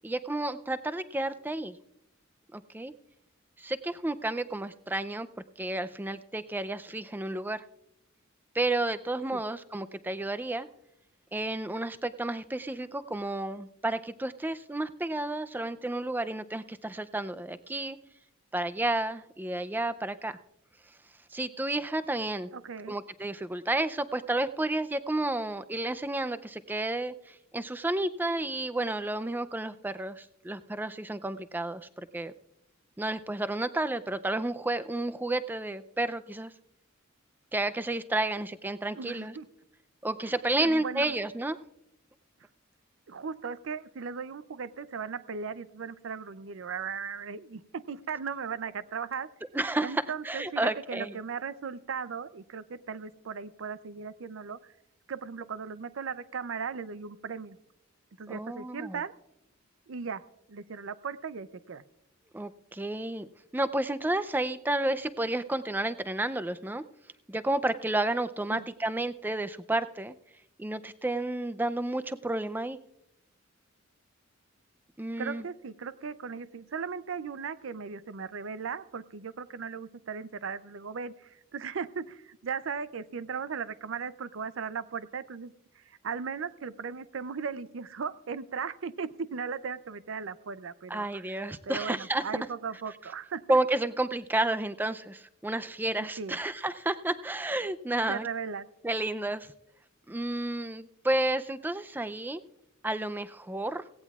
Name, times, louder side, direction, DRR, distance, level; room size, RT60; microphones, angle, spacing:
voice 1, 0.0-1.8 2.5-2.9 3.6-5.3 5.6-7.6 8.5-10.7 11.3-18.0 18.5-20.4 21.3-22.5 22.9-32.3 33.0-36.5 37.5-39.3 40.0-41.6 49.5-51.2 58.3-59.0 62.3-63.3 63.5-66.8 67.3-70.1 70.6-72.8 75.0-75.4 90.9-92.2 93.5-98.3 98.8-99.5 100.1-102.4 102.8-103.8, right 2 dB, 10° right, 12 dB, 0.4 m, -31 dB
voice 2, 22.5-23.0 38.9-39.5 40.2-40.3 40.6-41.2 43.1-49.3 49.8-54.7 55.1-57.6 58.2-59.1 59.9-60.2 60.5-61.8 68.5-68.7 75.2-93.6 96.0-96.4 98.1-98.7, right 6 dB, 75° right, 15 dB, 0.5 m, -37 dB
17.0 x 17.0 x 2.4 m, 0.85 s
head